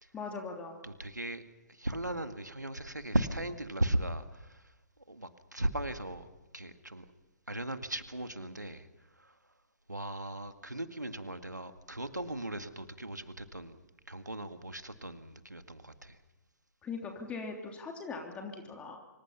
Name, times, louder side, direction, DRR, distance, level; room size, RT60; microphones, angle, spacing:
voice 1, 0.1-0.8 16.8-19.0, left 4 dB, 15° left, 2 dB, 3.2 m, -40 dB
voice 2, 0.8-1.4 1.7-4.7 5.1-6.3 6.5-7.1 7.5-8.9 9.2-9.4 9.9-13.8 14.1-16.2, right 1 dB, 90° right, 9 dB, 2.0 m, -37 dB
26.0 x 25.0 x 5.7 m, 1.1 s
figure-of-eight pair, 125°, 9 cm